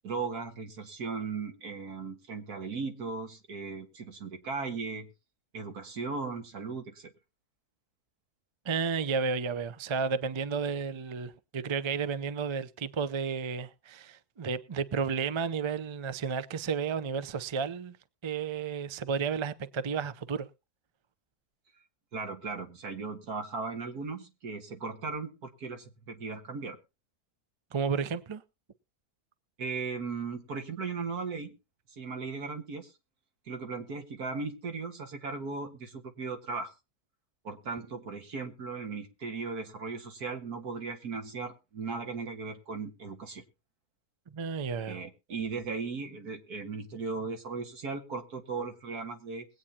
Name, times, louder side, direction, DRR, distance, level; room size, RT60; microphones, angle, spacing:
voice 1, 0.0-5.1 5.5-7.1 22.1-26.8 29.6-31.5 32.0-32.9 33.5-36.7 37.4-43.4 44.9-49.5, right 4 dB, 85° right, 2.1 m, -37 dB
voice 2, 8.6-18.0 18.2-20.5 27.7-28.4 44.3-45.0, right 5 dB, 50° right, 0.3 m, -32 dB
22.0 x 8.7 x 2.8 m
omnidirectional pair, 1.6 m